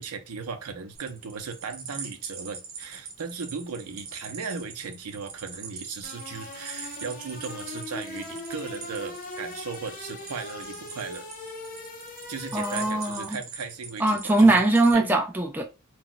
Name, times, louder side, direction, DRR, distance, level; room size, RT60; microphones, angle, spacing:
voice 1, 0.0-11.3 12.3-14.5 14.9-15.1, right 5 dB, 85° right, 0.6 m, -37 dB
sound 1, 0.9-14.9, right 5 dB, 45° right, 0.7 m, -42 dB
sound 2, 6.0-13.4, left 2 dB, 35° left, 0.6 m, -40 dB
voice 2, 12.5-13.4 14.0-15.6, right 2 dB, 10° right, 0.3 m, -21 dB
2.3 x 2.1 x 3.8 m
head